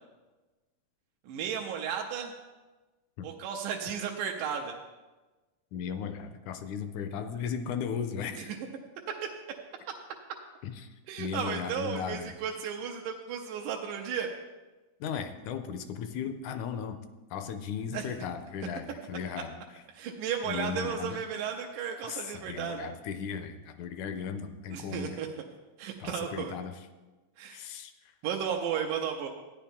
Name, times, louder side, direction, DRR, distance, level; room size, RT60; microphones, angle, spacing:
voice 1, 1.3-2.3 3.2-4.8 11.1-14.3 17.9-18.0 20.0-22.9 24.7-25.3 25.8-26.5 27.4-27.6 28.2-29.3, right 7 dB, 85° right, 2 dB, 2.3 m, -34 dB
voice 2, 5.7-8.5 10.6-10.9 11.2-12.4 15.0-17.0 17.3-19.8 20.4-21.2 22.0-25.2 26.0-26.9 27.5-28.1, left 7 dB, 80° left, 9 dB, 1.9 m, -36 dB
13.5 x 10.0 x 3.6 m, 1.2 s
omnidirectional pair, 3.7 m